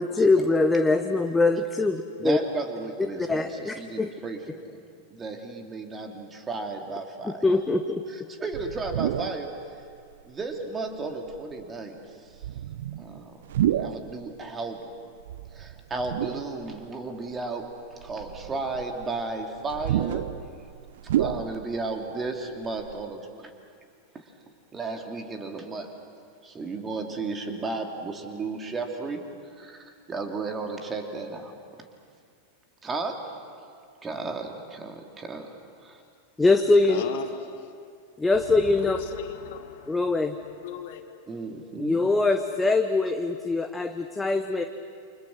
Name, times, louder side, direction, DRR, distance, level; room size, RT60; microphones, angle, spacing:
voice 1, 0.0-2.4 3.2-4.1 7.2-8.0 36.4-37.0 38.2-39.0 39.9-40.4 41.8-44.6, left 3 dB, 10° left, 7 dB, 1.0 m, -23 dB
voice 2, 2.2-4.8 5.1-7.4 8.1-9.5 10.2-11.9 13.0-13.4 13.8-14.9 15.5-17.7 18.0-20.3 21.2-23.2 24.7-25.9 26.4-29.3 29.6-31.5 32.8-33.2 34.0-35.5 35.8-36.0 41.3-42.0, right 3 dB, 20° right, 4 dB, 2.7 m, -34 dB
sound 1, 8.5-9.5 10.1-10.2 11.3-11.6 12.3-14.1 15.2-16.8 17.3-17.4 18.0-22.0 22.3-22.4 22.6-23.1, right 11 dB, 60° right, 0.7 m, -30 dB
voice 3, 36.9-37.7 38.7-41.0, left 9 dB, 50° left, 7 dB, 1.9 m, -38 dB
28.5 x 25.5 x 6.3 m, 2.3 s
figure-of-eight pair, 90°, 0 cm